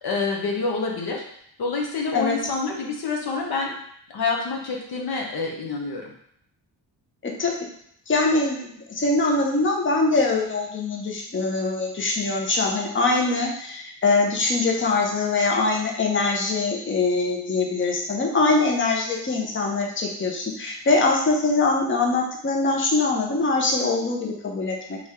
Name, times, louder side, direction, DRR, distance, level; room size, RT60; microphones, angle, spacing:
voice 1, 0.0-1.2 1.6-3.7 4.1-6.1, left 4 dB, 55° left, 0 dB, 0.8 m, -27 dB
voice 2, 7.2-7.6 8.1-25.0, left 3 dB, 25° left, 0 dB, 0.8 m, -23 dB
3.4 x 2.6 x 3.5 m, 0.68 s
supercardioid pair, 60°, 44 cm